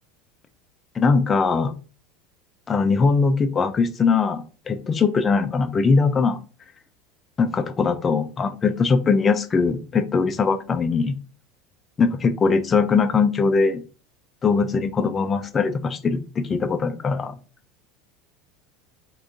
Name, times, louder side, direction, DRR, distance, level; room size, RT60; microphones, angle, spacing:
voice 1, 1.0-1.7 2.7-6.4 7.4-11.2 12.0-13.8 14.4-17.3, left 4 dB, 25° left, 8 dB, 0.4 m, -21 dB
3.6 x 2.3 x 2.5 m, 0.35 s
hypercardioid pair, 80°, 0 cm